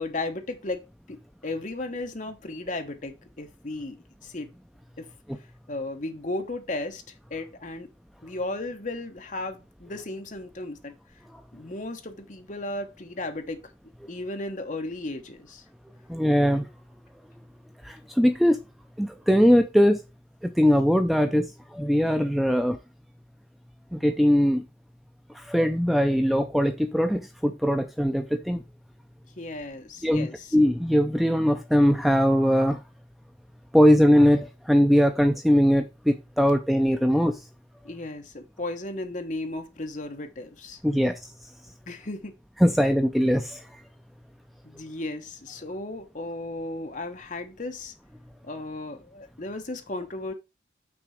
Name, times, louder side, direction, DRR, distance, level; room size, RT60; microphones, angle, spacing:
voice 1, 0.0-4.5 5.0-5.1 5.7-7.9 8.2-10.9 11.5-13.6 14.1-15.6 29.4-30.5 37.8-40.8 41.9-42.3 44.6-47.9 48.4-50.3, left 2 dB, 40° left, 1.1 m, -35 dB
voice 2, 16.1-16.7 17.8-18.6 19.0-20.0 20.4-22.8 23.9-24.6 25.3-28.6 30.0-32.8 33.7-37.3 40.8-41.2 42.6-43.6, equal, ahead, 0.4 m, -21 dB
6.1 x 4.0 x 6.3 m
head